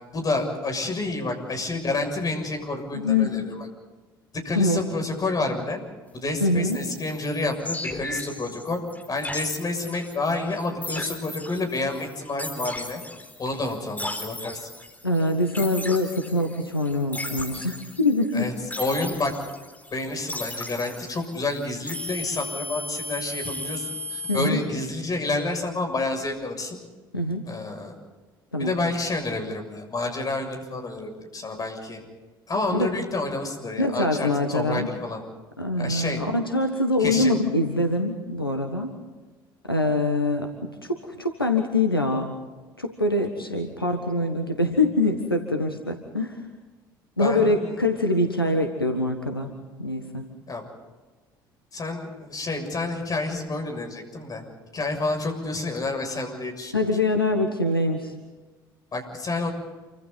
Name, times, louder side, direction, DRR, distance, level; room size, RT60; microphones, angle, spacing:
voice 1, 0.1-3.5 4.4-5.8 6.1-8.8 9.1-13.0 13.4-14.7 18.3-19.3 19.9-26.8 27.5-27.9 28.6-32.0 32.5-35.2 35.8-36.2 37.0-37.3 47.2-47.8 50.5-50.6 51.7-54.4 54.7-56.7 58.9-59.5, left 2 dB, 30° left, 4 dB, 6.9 m, -29 dB
voice 2, 2.9-3.3 4.5-4.8 6.4-6.8 15.0-18.5 24.3-24.6 27.1-27.5 28.5-28.7 32.7-32.9 33.8-34.9 35.6-39.0 39.7-40.5 40.8-42.4 42.8-46.4 47.2-49.5 49.8-50.3 56.7-58.1, left 2 dB, 90° left, 5 dB, 1.5 m, -24 dB
sound 1, 6.7-24.5, left 1 dB, 15° left, 4.6 m, -36 dB
28.5 x 25.0 x 4.1 m, 1.3 s
figure-of-eight pair, 55°, 12 cm